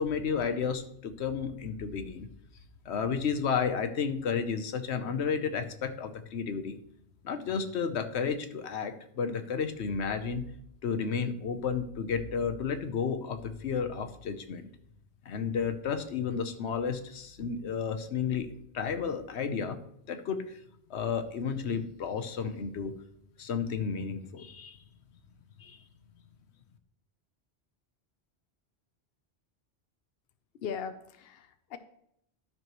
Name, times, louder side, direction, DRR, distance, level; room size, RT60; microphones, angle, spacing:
voice 1, 0.0-2.3 2.8-6.8 7.2-10.4 10.8-14.7 15.2-18.5 18.7-19.8 20.1-20.6 20.9-22.9 23.4-24.8 25.6-25.8, left 6 dB, 85° left, 9 dB, 1.1 m, -32 dB
voice 2, 30.6-31.8, left 7 dB, 65° left, 9 dB, 0.8 m, -39 dB
12.0 x 5.9 x 3.0 m, 0.74 s
omnidirectional pair, 1.1 m